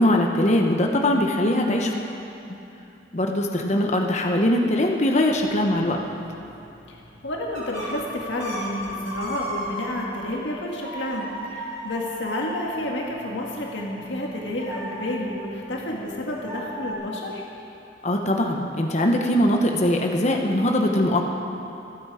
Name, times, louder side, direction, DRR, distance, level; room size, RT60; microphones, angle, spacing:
voice 1, 0.0-1.9 3.1-6.0 18.0-21.3, left 1 dB, 40° left, 1 dB, 1.0 m, -21 dB
voice 2, 1.5-2.0 6.9-7.0 7.2-17.4, left 1 dB, 75° left, -2 dB, 1.9 m, -30 dB
sound 1, 5.3-10.3 10.8-16.9, equal, 40° right, 4.4 m, -37 dB
27.0 x 9.0 x 4.9 m, 2.8 s
head